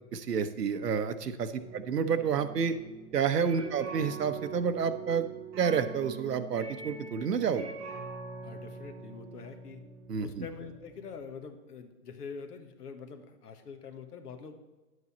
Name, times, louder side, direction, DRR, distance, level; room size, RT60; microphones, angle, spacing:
voice 1, 0.1-2.7 3.1-5.2 5.6-7.7 10.1-10.4, right 6 dB, 90° right, 10 dB, 0.9 m, -29 dB
sound 1, 1.5-11.3, right 5 dB, 10° right, 0.4 m, -44 dB
voice 2, 8.4-9.8 10.2-14.6, left 5 dB, 80° left, 7 dB, 1.4 m, -45 dB
9.6 x 8.0 x 4.1 m, 1.1 s
hypercardioid pair, 130°, 46 cm